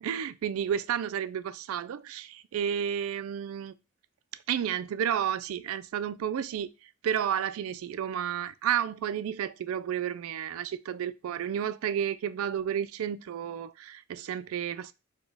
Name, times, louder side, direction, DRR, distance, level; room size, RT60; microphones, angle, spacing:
voice 1, 0.0-3.7 4.5-6.7 7.0-14.9, right 9 dB, 75° right, 0.3 m, -31 dB
4.2 x 2.2 x 3.3 m
head